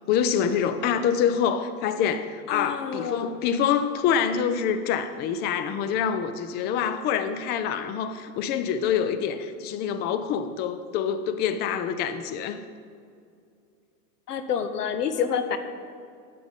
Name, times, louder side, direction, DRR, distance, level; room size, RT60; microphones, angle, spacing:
voice 1, 0.1-12.6, left 8 dB, 25° left, 11 dB, 0.4 m, -26 dB
voice 2, 2.5-3.4 14.3-15.6, left 7 dB, 90° left, 9 dB, 0.9 m, -28 dB
10.5 x 8.4 x 3.7 m, 2.4 s
hypercardioid pair, 110°, 45 cm